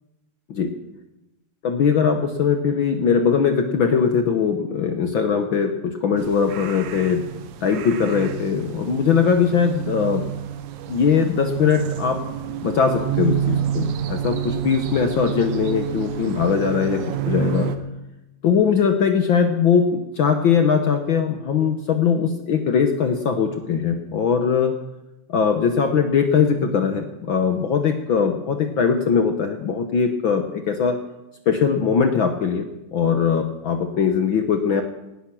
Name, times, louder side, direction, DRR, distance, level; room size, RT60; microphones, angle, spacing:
voice 1, 1.6-7.2 7.6-10.2 10.9-12.2 12.6-17.7 18.4-24.7 25.3-31.0 31.5-34.8, left 6 dB, 65° left, 6 dB, 1.3 m, -20 dB
sound 1, 6.2-17.8, right 10 dB, 75° right, 2.4 m, -29 dB
19.0 x 12.0 x 6.1 m, 0.96 s
omnidirectional pair, 3.5 m